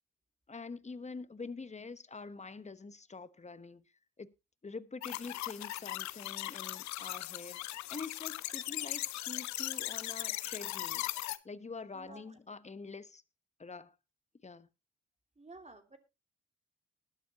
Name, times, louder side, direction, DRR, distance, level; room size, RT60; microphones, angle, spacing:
voice 1, 0.5-3.8 4.2-4.3 4.6-11.0 11.4-13.2 13.6-13.9 14.4-14.7, left 4 dB, 25° left, 1.2 m, -46 dB
sound 1, 5.0-11.4, left 16 dB, 65° left, 0.8 m, -38 dB
voice 2, 11.9-12.4 15.4-16.0, right 2 dB, 20° right, 2.7 m, -52 dB
20.0 x 7.6 x 3.0 m
hypercardioid pair, 45°, 30 cm